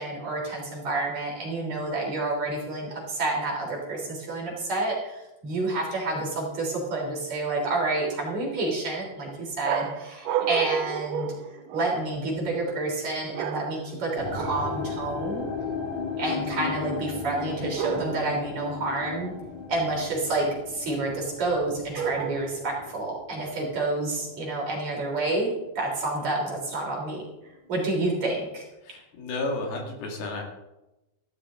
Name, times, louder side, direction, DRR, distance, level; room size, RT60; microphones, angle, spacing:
voice 1, 0.0-11.3 11.7-15.5 16.2-19.3 19.7-27.2 27.7-28.6, right 2 dB, 45° right, -2 dB, 4.5 m, -29 dB
sound 1, 9.6-12.2 13.3-14.0 14.3-14.8 17.8-18.4 22.0-22.7, right 8 dB, 90° right, 2.7 m, -31 dB
sound 2, 14.2-25.3 25.6-26.2 26.8-26.9, left 5 dB, 50° left, 3.5 m, -36 dB
voice 2, 28.8-30.4, left 2 dB, 75° left, 1 dB, 4.0 m, -32 dB
14.0 x 12.5 x 3.8 m, 0.95 s
omnidirectional pair, 4.5 m